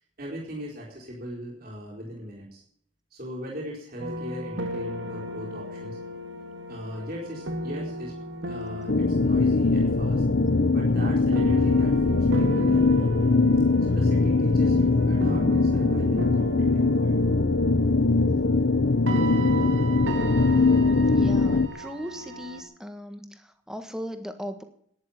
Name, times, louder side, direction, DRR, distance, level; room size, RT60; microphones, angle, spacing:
voice 1, 0.2-2.6 3.1-6.0 6.7-8.1 8.5-10.2 10.7-13.1 13.8-17.2, equal, 45° right, -4 dB, 4.3 m, -39 dB
sound 1, 4.0-22.6, right 1 dB, 65° right, 2.0 m, -36 dB
sound 2, 8.9-21.7, left 3 dB, 55° left, 0.7 m, -21 dB
voice 2, 21.1-24.6, equal, 5° right, 8 dB, 1.5 m, -37 dB
12.0 x 10.5 x 8.7 m, 0.65 s
head